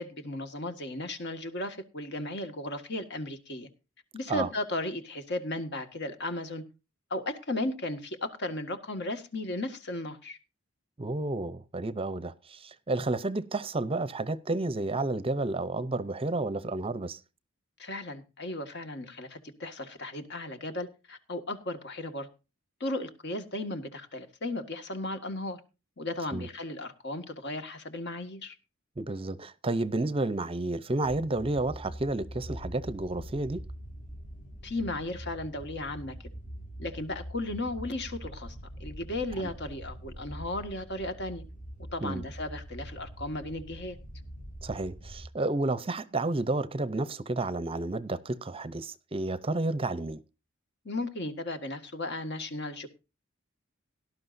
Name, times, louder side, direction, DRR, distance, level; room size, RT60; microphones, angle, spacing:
voice 1, 0.0-3.7 4.1-6.6 7.1-10.4 17.8-22.3 22.8-25.6 26.0-28.6 34.6-36.2 36.8-41.4 41.9-44.0 50.9-52.9, left 2 dB, 55° left, 1.8 m, -35 dB
voice 2, 11.0-17.2 26.3-26.5 29.0-33.6 39.4-39.5 42.0-42.2 44.6-50.2, right 2 dB, 25° right, 0.7 m, -31 dB
sound 1, 31.0-45.3, equal, 40° left, 1.5 m, -44 dB
18.0 x 12.0 x 2.6 m
head